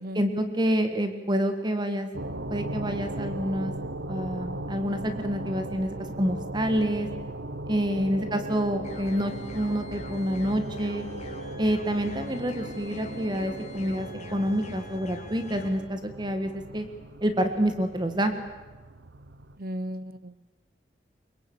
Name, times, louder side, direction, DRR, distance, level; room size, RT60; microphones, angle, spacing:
voice 1, 0.2-2.1 2.5-3.7 4.1-7.1 7.7-11.1 11.6-16.9 17.2-18.3, equal, 25° right, 7 dB, 1.6 m, -28 dB
sound 1, 2.1-19.6, right 1 dB, 90° right, 1.1 m, -38 dB
voice 2, 7.9-8.3 19.6-20.4, equal, 55° right, 16 dB, 0.9 m, -36 dB
sound 2, 8.8-15.7, left 2 dB, 40° left, 3.8 m, -44 dB
23.0 x 22.5 x 8.8 m, 1.2 s
head